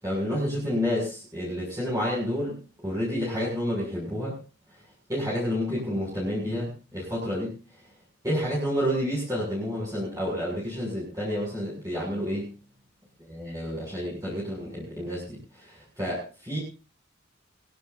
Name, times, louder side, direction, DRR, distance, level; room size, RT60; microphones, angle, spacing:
voice 1, 0.0-4.4 5.1-7.5 8.2-12.5 13.3-16.6, equal, 15° right, -5 dB, 7.0 m, -29 dB
22.0 x 17.5 x 2.7 m, 0.34 s
head